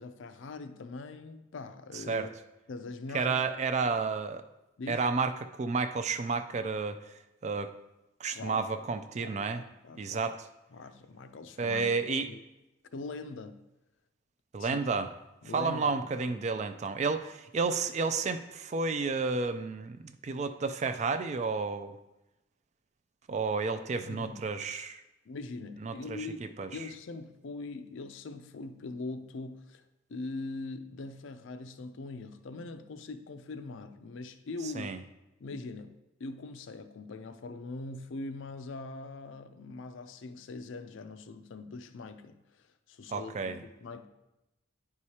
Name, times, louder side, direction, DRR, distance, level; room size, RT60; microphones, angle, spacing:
voice 1, 0.0-2.3 2.7-3.4 3.8-3.9 4.8-5.0 8.3-8.7 9.2-10.3 10.7-11.9 12.3-12.4 12.9-13.6 14.6-14.8 15.4-16.4 24.0-24.4 25.3-29.8 30.1-35.0 35.4-42.4 42.9-44.1, left 3 dB, 65° left, 0.5 m, -42 dB
voice 2, 1.9-2.3 3.1-4.4 4.9-7.0 7.4-7.7 8.2-9.6 10.0-10.4 11.6-12.3 14.5-15.1 15.5-20.0 20.2-22.0 23.3-25.0 25.8-26.3 26.6-26.7 34.7-35.0 43.1-43.6, right 4 dB, 35° right, 0.3 m, -31 dB
9.3 x 4.7 x 2.8 m
head